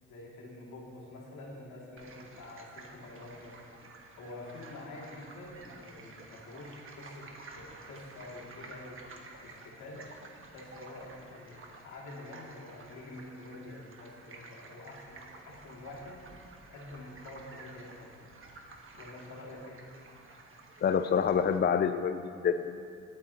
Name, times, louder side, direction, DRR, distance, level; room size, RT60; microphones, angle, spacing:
voice 1, 0.1-3.6 4.2-9.1 9.4-10.1 10.5-18.1 18.9-19.9, left 2 dB, 75° left, -3 dB, 2.3 m, -47 dB
sound 1, 2.0-21.6, right 3 dB, 45° right, 1.4 m, -52 dB
voice 2, 20.8-22.9, left 7 dB, 35° left, 9 dB, 0.4 m, -27 dB
19.5 x 8.7 x 2.8 m, 2.4 s
cardioid pair, 90°, 30 cm